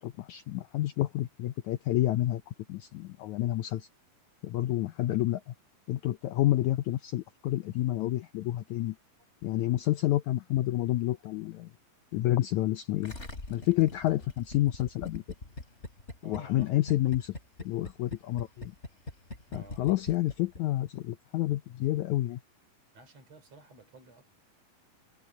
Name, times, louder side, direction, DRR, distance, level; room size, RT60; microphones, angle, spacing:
voice 1, 0.0-2.4 2.7-3.9 4.4-5.5 5.9-8.9 9.4-11.7 12.1-13.1 13.5-15.2 16.2-17.3 17.6-18.7 19.5-22.4, left 15 dB, 75° left, 1.8 m, -29 dB
Gurgling, 13.0-20.6 20.9-21.0, left 2 dB, 20° left, 3.4 m, -42 dB
voice 2, 16.2-16.7 19.5-19.8 22.9-24.3, right 2 dB, 45° right, 5.8 m, -52 dB
omnidirectional pair, 4.1 m